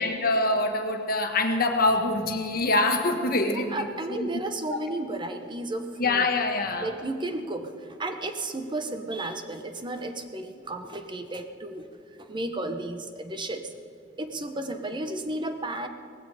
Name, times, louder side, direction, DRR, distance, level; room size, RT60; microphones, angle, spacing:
voice 1, 0.0-3.9 4.2-4.3 4.7-4.8 6.0-6.9, left 2 dB, 50° left, 4 dB, 1.7 m, -25 dB
voice 2, 3.5-6.3 6.8-11.9 12.2-13.7 14.2-15.9, right 2 dB, 25° right, 7 dB, 0.9 m, -33 dB
18.0 x 16.0 x 4.9 m, 2.5 s
head